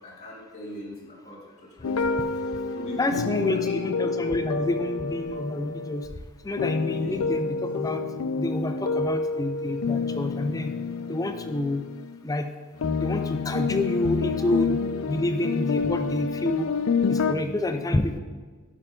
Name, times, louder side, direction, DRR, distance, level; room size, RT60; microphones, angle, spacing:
voice 1, 0.0-2.0 2.7-3.7 6.9-7.2 14.4-14.5 17.1-17.2, left 1 dB, 35° left, -5 dB, 2.6 m, -40 dB
sound 1, 1.8-6.1 6.6-12.2 12.8-17.3, left 4 dB, 90° left, 0.4 m, -28 dB
voice 2, 2.9-6.1 6.4-8.0 8.4-10.7 11.1-11.8 12.2-12.5 13.0-14.8 15.1-16.7 17.1-18.2, left 2 dB, 15° left, 7 dB, 0.4 m, -28 dB
11.0 x 5.6 x 3.7 m, 1.4 s
head